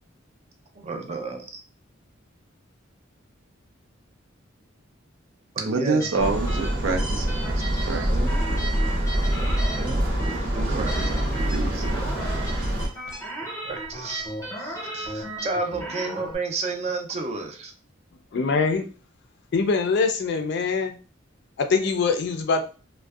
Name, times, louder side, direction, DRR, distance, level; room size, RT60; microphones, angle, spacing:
voice 1, 0.8-1.6 5.6-6.0 8.1-8.3 9.8-10.1 10.6-11.0 13.4-14.3 14.6-17.7, right 3 dB, 35° right, 4 dB, 0.4 m, -31 dB
voice 2, 5.7-8.7 10.7-12.1, right 3 dB, 85° right, 5 dB, 0.5 m, -29 dB
sound 1, 6.0-16.3, right 1 dB, 15° left, 0.7 m, -35 dB
sound 2, 6.2-12.9, right 1 dB, 60° right, 0.8 m, -25 dB
voice 3, 18.3-18.9 19.5-20.9 21.6-22.6, left 4 dB, 55° left, 6 dB, 0.4 m, -23 dB
2.6 x 2.1 x 2.3 m, 0.36 s
head